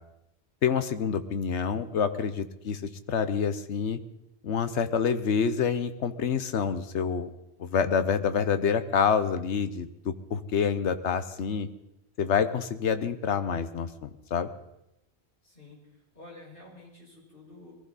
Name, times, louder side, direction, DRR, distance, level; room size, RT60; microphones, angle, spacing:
voice 1, 0.6-2.8 3.1-4.0 4.4-7.3 7.6-11.7 12.2-14.5, left 6 dB, 85° left, 10 dB, 1.2 m, -27 dB
voice 2, 15.4-15.8 16.1-17.7, left 2 dB, 50° left, -4 dB, 6.1 m, -49 dB
21.5 x 15.0 x 4.1 m, 0.86 s
omnidirectional pair, 1.1 m